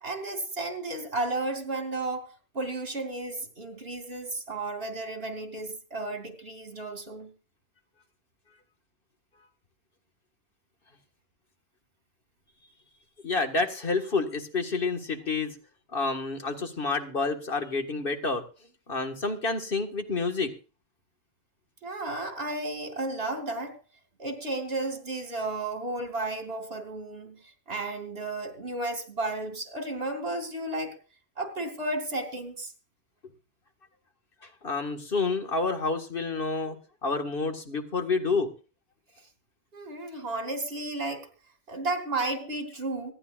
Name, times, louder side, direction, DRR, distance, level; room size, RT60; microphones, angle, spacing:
voice 1, 0.0-2.3 2.5-7.3 21.8-23.8 24.2-27.4 27.7-30.9 31.4-32.7 39.7-41.3 41.7-43.1, right 2 dB, 55° right, 2.9 m, -33 dB
voice 2, 13.2-15.6 15.9-18.4 18.9-20.5 34.4-36.8 37.0-38.5, left 3 dB, 50° left, 1.9 m, -29 dB
25.0 x 9.9 x 2.4 m
omnidirectional pair, 1.3 m